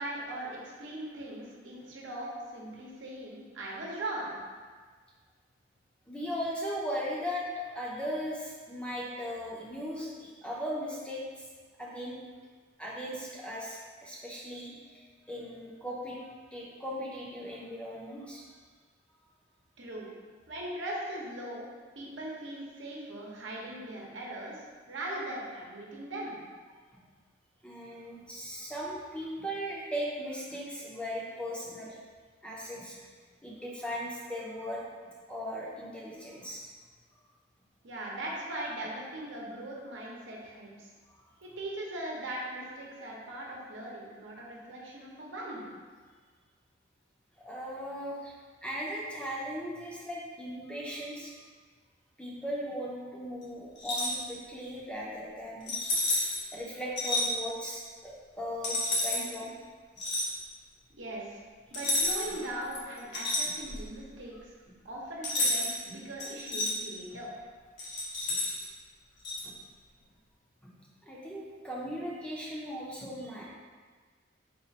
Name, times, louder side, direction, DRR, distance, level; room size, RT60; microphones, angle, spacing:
voice 1, 0.0-4.4 19.8-20.1 20.5-21.7 21.9-24.6 24.9-26.4 37.8-40.9 41.4-45.7 60.9-61.4 61.7-64.5 64.8-67.3, right 1 dB, 75° right, -3 dB, 0.8 m, -39 dB
voice 2, 6.1-11.2 11.8-12.2 12.8-15.0 15.3-16.2 16.5-18.4 27.6-32.0 32.4-33.0 33.4-34.8 35.3-36.6 47.4-48.3 48.6-51.3 52.2-55.7 56.5-59.5 68.3-68.4 69.4-69.5 70.6-70.7 71.0-73.5, equal, 5° left, -5 dB, 0.5 m, -38 dB
sound 1, 53.8-54.2 55.7-56.4 57.0-57.3 58.6-59.2 60.0-60.3 61.7-62.4 62.7-63.9 65.2-65.8 66.2-66.7 67.8-68.6 69.2-69.4, left 2 dB, 65° left, 1.0 m, -30 dB
4.1 x 2.4 x 4.0 m, 1.5 s
head